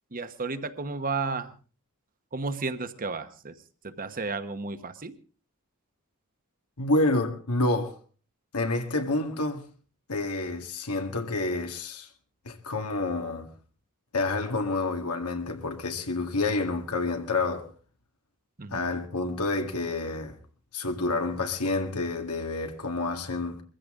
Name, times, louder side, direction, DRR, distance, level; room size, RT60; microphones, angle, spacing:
voice 1, 0.1-1.5 2.3-3.6 3.8-5.1 18.6-18.9, right 4 dB, 40° right, 1.1 m, -33 dB
voice 2, 6.8-8.0 8.5-9.6 10.1-12.1 12.5-13.5 14.1-17.7 18.7-20.3 20.7-23.6, left 2 dB, 90° left, 1.8 m, -28 dB
22.0 x 15.5 x 3.7 m
head